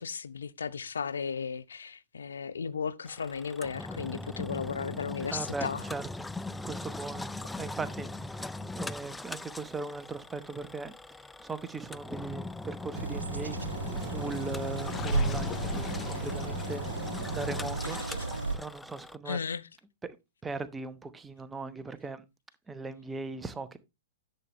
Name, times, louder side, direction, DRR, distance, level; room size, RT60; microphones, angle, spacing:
voice 1, 0.0-5.8 19.3-19.6, left 6 dB, 70° left, 0.7 m, -35 dB
Engine, 3.1-19.2, left 2 dB, 5° left, 0.4 m, -40 dB
voice 2, 5.3-6.3 6.6-13.6 13.9-17.0 17.3-18.2 18.5-19.4 20.0-20.2 20.4-22.2 22.7-23.8, right 3 dB, 10° right, 1.0 m, -39 dB
sound 1, 12.9-18.6, right 3 dB, 85° right, 1.0 m, -34 dB
Gurgling, 14.8-17.0, left 7 dB, 20° left, 0.9 m, -41 dB
11.0 x 7.8 x 3.1 m
figure-of-eight pair, 110°, 0 cm